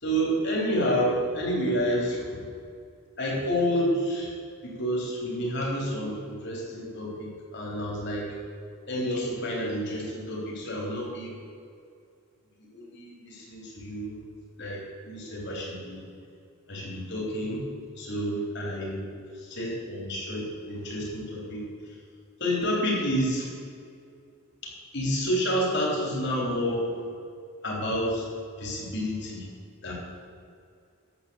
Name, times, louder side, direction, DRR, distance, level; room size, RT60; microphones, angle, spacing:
voice 1, 0.0-2.5 3.2-4.4 4.6-8.3 8.9-11.4 12.6-14.1 14.6-14.8 15.0-16.0 16.7-17.6 18.0-19.1 19.5-22.0 22.4-23.5 24.9-27.0 27.6-28.2 28.6-29.5 29.8-29.9, equal, 50° left, -3 dB, 3.8 m, -29 dB
11.0 x 8.4 x 7.2 m, 2.3 s
head